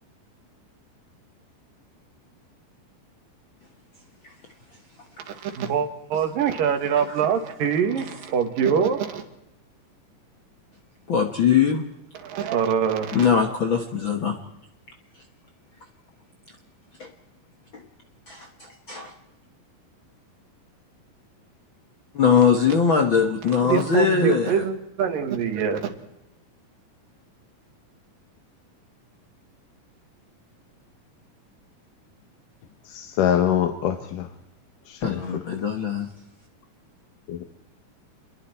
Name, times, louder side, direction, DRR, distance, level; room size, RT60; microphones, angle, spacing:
voice 1, 5.3-9.3 12.2-13.3 23.6-25.9, right 7 dB, 80° right, 7 dB, 3.6 m, -24 dB
voice 2, 11.1-11.8 13.1-14.3 17.0-17.1 17.7-17.8 18.3-19.1 22.1-24.6 35.0-36.1, left 6 dB, 50° left, 4 dB, 1.7 m, -21 dB
voice 3, 32.8-34.3 34.9-35.6 37.3-37.4, left 10 dB, 75° left, 6 dB, 2.8 m, -25 dB
28.5 x 21.5 x 4.5 m, 0.87 s
omnidirectional pair, 3.9 m